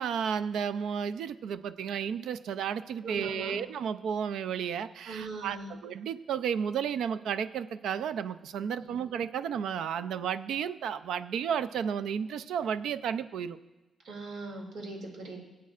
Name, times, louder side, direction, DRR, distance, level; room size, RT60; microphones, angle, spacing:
voice 1, 0.0-13.6, right 7 dB, 90° right, 12 dB, 0.4 m, -32 dB
voice 2, 3.0-3.6 5.0-5.7 8.8-9.0 14.0-15.4, right 3 dB, 70° right, 0 dB, 2.5 m, -40 dB
22.5 x 8.4 x 2.5 m, 1.1 s
wide cardioid pair, 165°, 0 cm